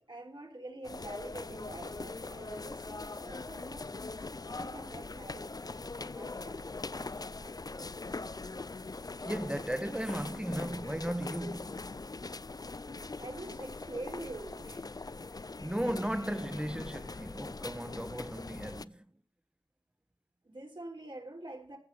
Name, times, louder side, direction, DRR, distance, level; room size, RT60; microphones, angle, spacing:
voice 1, 0.0-3.9 4.4-6.7 7.1-7.9 13.2-14.9 20.4-21.8, right 2 dB, 65° right, 3.4 m, -46 dB
sound 1, 0.8-18.9, left 3 dB, 45° left, 0.5 m, -42 dB
voice 2, 9.2-11.8 15.6-19.0, right 1 dB, 10° right, 1.1 m, -36 dB
15.0 x 5.8 x 8.2 m
wide cardioid pair, 50°, 9 cm